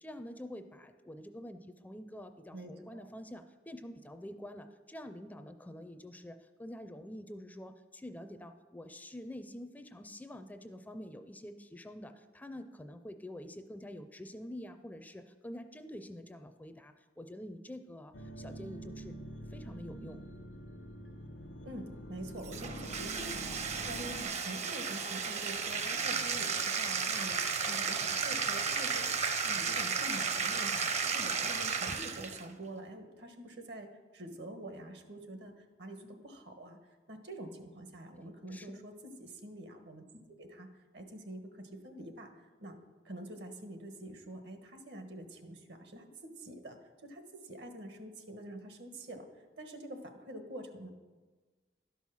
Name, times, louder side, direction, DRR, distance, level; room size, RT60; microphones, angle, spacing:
voice 1, 0.0-19.2 19.5-20.2 38.2-38.8, left 1 dB, 10° left, 9 dB, 0.4 m, -47 dB
voice 2, 2.5-3.1 21.6-36.8 37.1-38.9 39.2-40.0 40.4-42.3 42.6-42.8 43.0-50.9, right 1 dB, 70° right, 6 dB, 1.2 m, -46 dB
sound 1, 18.1-24.3, right 1 dB, 90° left, 0.8 m, -46 dB
Bathtub (filling or washing), 22.4-32.5, right 5 dB, 40° right, 0.7 m, -33 dB
11.5 x 5.5 x 6.2 m, 1.3 s
head